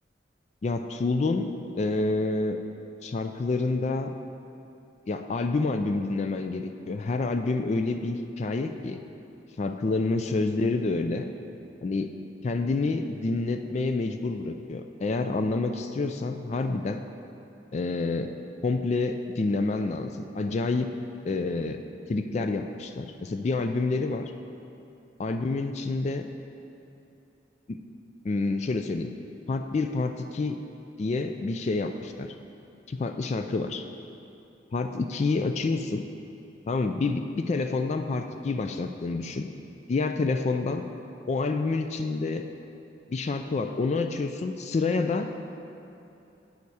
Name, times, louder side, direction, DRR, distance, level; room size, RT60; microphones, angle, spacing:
voice 1, 0.6-2.6 3.0-4.1 5.1-9.0 9.6-11.3 11.8-12.1 12.4-17.0 17.7-18.3 18.6-20.9 21.2-21.8 22.1-24.3 25.2-26.3 27.7-27.8 28.2-29.1 29.5-30.6 31.0-32.3 32.9-33.8 34.7-36.0 36.7-39.5 39.9-40.8 41.3-42.4 43.1-45.3, left 3 dB, 35° left, 7 dB, 0.3 m, -28 dB
7.9 x 7.0 x 4.8 m, 2.8 s
head